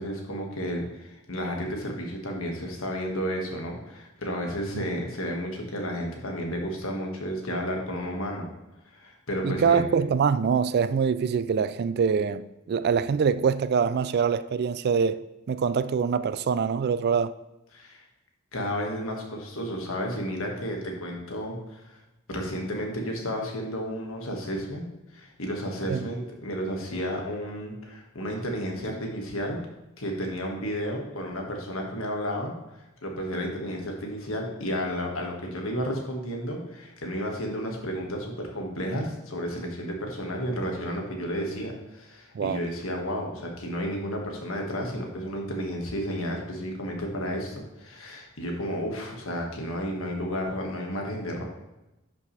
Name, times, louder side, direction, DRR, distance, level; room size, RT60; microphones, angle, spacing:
voice 1, 0.0-8.5 8.9-9.8 17.7-18.0 18.5-22.0 22.3-24.9 25.1-29.6 30.0-32.5 33.0-51.4, equal, 70° left, 1.7 m, -32 dB
voice 2, 9.4-17.3 25.9-26.0 42.3-42.6, right 6 dB, 50° right, 0.3 m, -24 dB
10.5 x 6.0 x 3.3 m
head